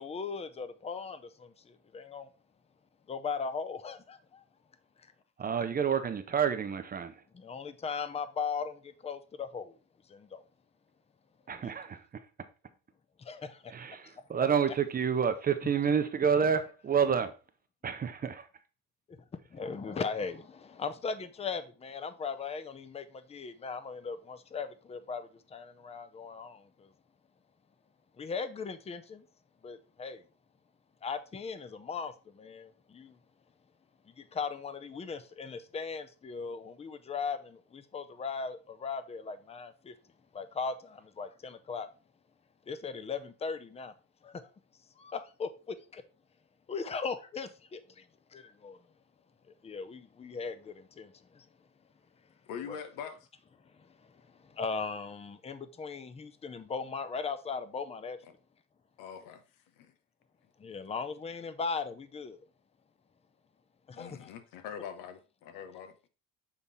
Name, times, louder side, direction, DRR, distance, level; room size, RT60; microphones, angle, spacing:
voice 1, 0.0-2.3 3.1-4.4 5.0-5.1 7.3-9.7 10.1-10.4 11.6-11.7 13.2-13.7 14.0-14.1 19.1-26.9 28.2-29.3 29.6-30.2 31.0-33.2 34.1-39.9 40.3-41.9 42.7-43.9 44.2-44.5 45.0-46.0 46.7-48.1 48.3-48.8 49.6-51.5 52.7-52.8 53.6-58.2 60.6-62.4 63.9-64.3, left 5 dB, 20° left, 0.6 m, -38 dB
voice 2, 5.4-7.2 11.5-12.0 13.7-17.3 17.8-18.5, right 7 dB, 25° right, 0.7 m, -29 dB
voice 3, 52.5-53.2 59.0-59.4 59.8-59.9 63.9-66.0, left 8 dB, 80° left, 1.0 m, -43 dB
7.2 x 3.5 x 4.0 m
cardioid pair, 120°, 33 cm